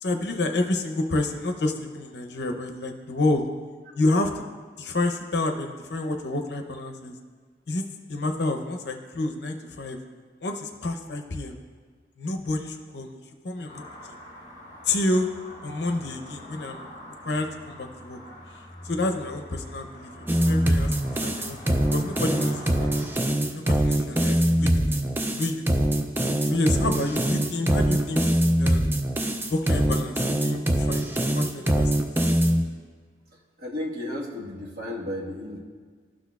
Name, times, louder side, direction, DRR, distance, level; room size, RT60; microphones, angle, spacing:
voice 1, 0.0-3.4 3.9-4.4 4.8-7.1 7.7-7.8 8.1-10.0 10.4-11.6 12.2-13.8 14.9-15.3 15.6-16.8 17.2-18.2 18.8-20.9 21.2-22.9 23.5-25.1 25.3-25.8 26.5-28.2 28.6-28.9 29.5-32.1, left 2 dB, 75° left, 4 dB, 0.7 m, -29 dB
sound 1, 13.7-23.1, left 1 dB, 40° left, 2.2 m, -44 dB
sound 2, 20.3-32.6, right 1 dB, 10° right, 0.3 m, -23 dB
voice 2, 33.3-35.6, left 1 dB, 50° right, -4 dB, 1.4 m, -34 dB
12.5 x 6.2 x 2.3 m, 1.6 s
head